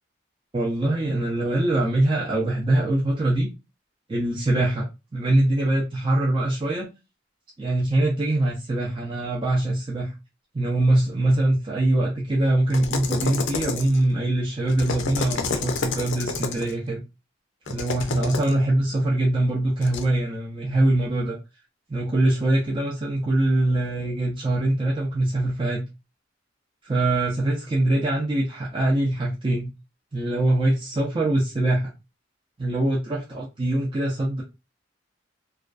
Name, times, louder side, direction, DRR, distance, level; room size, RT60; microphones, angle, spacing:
voice 1, 0.5-3.5 4.1-6.9 7.6-10.1 10.5-17.0 17.7-21.4 21.9-25.8 26.8-29.7 30.1-31.9 32.6-34.4, right 1 dB, 25° right, 0.4 m, -23 dB
sound 1, 12.7-14.1 14.7-16.7 17.7-18.5 19.8-20.0, left 4 dB, 70° left, 0.4 m, -29 dB
2.4 x 2.2 x 2.3 m
head